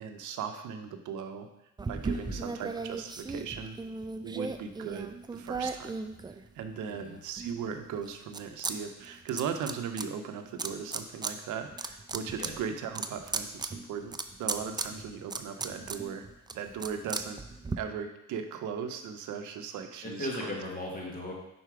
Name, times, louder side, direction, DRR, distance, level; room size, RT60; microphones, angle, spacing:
voice 1, 0.0-1.5 1.9-3.8 4.2-6.0 6.5-16.3 16.5-17.4 17.8-20.5, right 7 dB, 80° right, 7 dB, 0.7 m, -38 dB
sound 1, 1.8-6.8 7.4-8.7 9.0-10.0 10.6-11.3 11.7-17.8, right 4 dB, 15° right, 0.4 m, -37 dB
voice 2, 6.8-7.2 12.4-12.5 20.0-21.3, left 1 dB, 30° left, -2 dB, 1.9 m, -37 dB
5.7 x 4.3 x 4.8 m, 0.85 s
cardioid pair, 90°, 30 cm